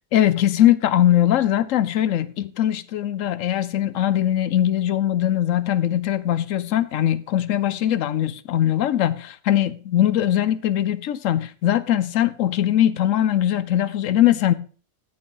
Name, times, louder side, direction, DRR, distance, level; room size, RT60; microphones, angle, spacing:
voice 1, 0.1-14.5, left 11 dB, 90° left, 1.1 m, -21 dB
14.5 x 6.5 x 3.9 m
omnidirectional pair, 1.3 m